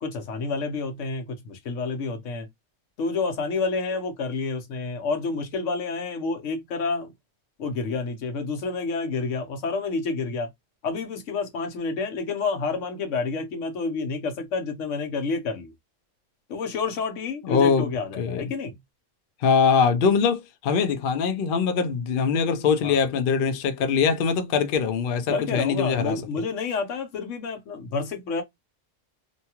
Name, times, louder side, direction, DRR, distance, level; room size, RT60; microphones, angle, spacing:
voice 1, 0.0-2.5 3.0-7.1 7.6-10.5 10.8-15.7 16.5-18.7 22.8-23.0 25.3-28.4, left 4 dB, 75° left, 1.1 m, -29 dB
voice 2, 17.4-17.9 18.2-18.5 19.4-26.2, left 6 dB, 60° left, 0.6 m, -22 dB
2.7 x 2.3 x 2.8 m
omnidirectional pair, 1.3 m